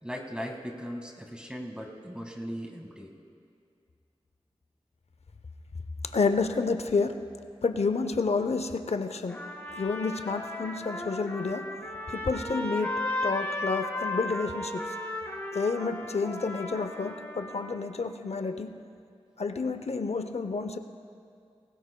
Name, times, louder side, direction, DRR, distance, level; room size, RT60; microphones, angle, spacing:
voice 1, 0.0-3.1 16.0-16.1, equal, 10° right, 1 dB, 1.8 m, -38 dB
voice 2, 6.1-7.2 7.6-9.4 9.8-11.7 12.1-14.9 15.5-18.8 19.4-20.8, left 4 dB, 70° left, 9 dB, 0.6 m, -30 dB
Trumpet, 9.3-17.8, left 1 dB, 15° left, 2.3 m, -35 dB
20.5 x 18.0 x 2.3 m, 2.4 s
wide cardioid pair, 50°, 11 cm